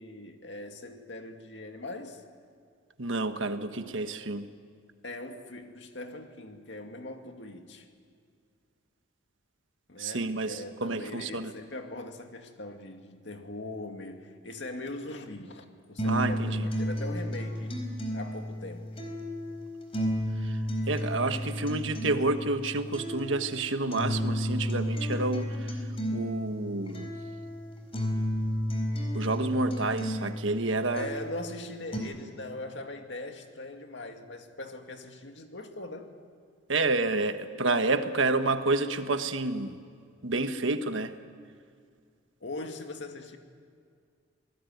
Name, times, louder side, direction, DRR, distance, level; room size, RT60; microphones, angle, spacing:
voice 1, 0.0-2.2 5.0-7.9 9.9-17.8 18.1-18.9 21.4-21.5 30.9-36.1 42.4-43.4, left 2 dB, 65° left, 4 dB, 2.3 m, -41 dB
voice 2, 3.0-4.5 10.0-11.5 16.1-16.7 20.4-20.6 20.9-25.8 26.1-27.1 29.1-31.1 36.7-39.8 40.2-41.1, right 2 dB, 80° right, 8 dB, 1.4 m, -29 dB
sound 1, 16.0-32.0, equal, 30° left, 4.2 m, -32 dB
27.0 x 19.5 x 9.4 m, 2.2 s
head